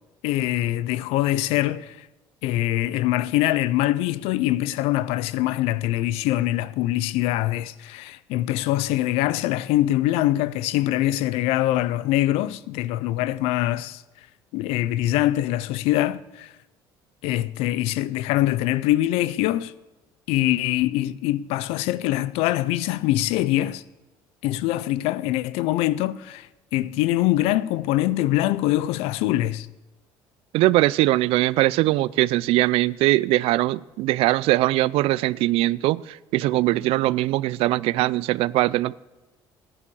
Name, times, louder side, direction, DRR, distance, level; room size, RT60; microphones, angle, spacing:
voice 1, 0.2-2.1 2.4-14.0 14.5-16.5 17.2-19.7 20.3-23.8 24.4-26.5 26.7-29.7, left 15 dB, 85° left, 0.5 m, -23 dB
voice 2, 30.5-38.9, right 17 dB, 75° right, 0.4 m, -21 dB
14.0 x 9.9 x 7.1 m
cardioid pair, 95°, 10 cm